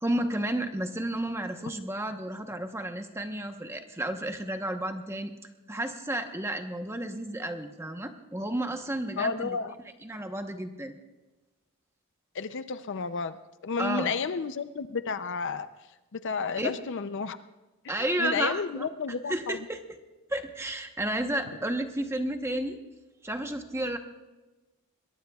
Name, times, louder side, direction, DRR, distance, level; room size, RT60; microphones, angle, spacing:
voice 1, 0.0-5.3 5.7-9.6 10.0-10.9 13.8-14.1 16.6-16.7 17.9-18.9 19.3-19.8 20.3-22.8 23.2-24.0, right 1 dB, 10° right, 5 dB, 1.0 m, -32 dB
voice 2, 9.2-9.7 12.3-15.7 16.1-17.4 17.8-19.6, left 5 dB, 55° left, 12 dB, 0.5 m, -32 dB
22.5 x 21.5 x 2.4 m, 1.1 s
head